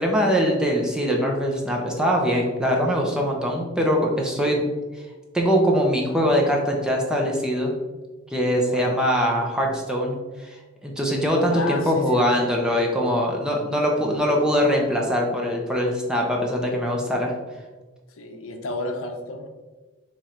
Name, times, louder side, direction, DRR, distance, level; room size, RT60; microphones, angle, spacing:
voice 1, 0.0-4.7 5.3-7.8 8.3-17.3, equal, 5° right, -1 dB, 0.6 m, -22 dB
voice 2, 11.5-12.5 18.2-19.5, left 2 dB, 80° left, 5 dB, 0.6 m, -31 dB
3.7 x 3.1 x 4.3 m, 1.2 s
head